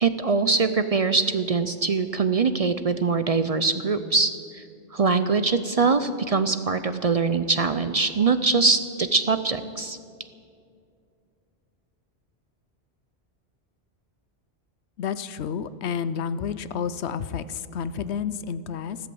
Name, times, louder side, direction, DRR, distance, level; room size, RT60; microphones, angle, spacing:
voice 1, 0.0-4.6 4.9-10.0, right 4 dB, 45° right, 11 dB, 0.5 m, -23 dB
voice 2, 15.0-19.0, left 7 dB, 90° left, 15 dB, 1.0 m, -30 dB
15.0 x 12.5 x 7.7 m, 2.3 s
omnidirectional pair, 1.1 m